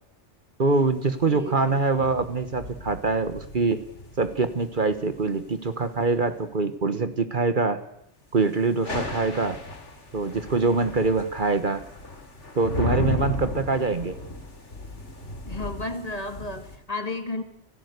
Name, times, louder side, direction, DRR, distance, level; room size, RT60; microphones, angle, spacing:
voice 1, 0.6-3.8 4.2-7.8 8.3-9.6 10.1-11.8 12.5-14.2, right 3 dB, 45° right, 11 dB, 1.3 m, -24 dB
sound 1, 0.7-6.2 8.6-16.8, left 2 dB, 85° left, 3.3 m, -35 dB
voice 2, 1.3-1.7 15.5-17.4, left 2 dB, 35° left, 8 dB, 2.1 m, -33 dB
29.5 x 11.5 x 8.1 m, 0.78 s
omnidirectional pair, 1.2 m